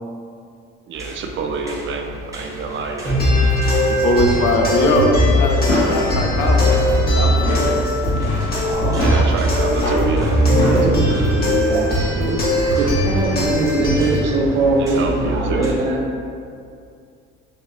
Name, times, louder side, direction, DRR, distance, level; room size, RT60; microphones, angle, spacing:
sound 1, 0.9-15.7, equal, 10° right, 0.7 m, -30 dB
voice 1, 0.9-3.2 8.9-10.4 14.8-15.7, right 5 dB, 35° right, 3 dB, 0.4 m, -27 dB
sound 2, 3.0-14.2, equal, 25° left, 0.9 m, -19 dB
voice 2, 3.9-6.7 7.1-7.7, left 1 dB, 55° left, 1 dB, 0.6 m, -20 dB
sound 3, 5.5-11.0, equal, 75° left, 1.2 m, -26 dB
voice 3, 8.7-9.1 10.5-16.0, right 2 dB, 80° right, -1 dB, 0.6 m, -22 dB
3.4 x 2.8 x 2.6 m, 2.4 s
hypercardioid pair, 55°, 35 cm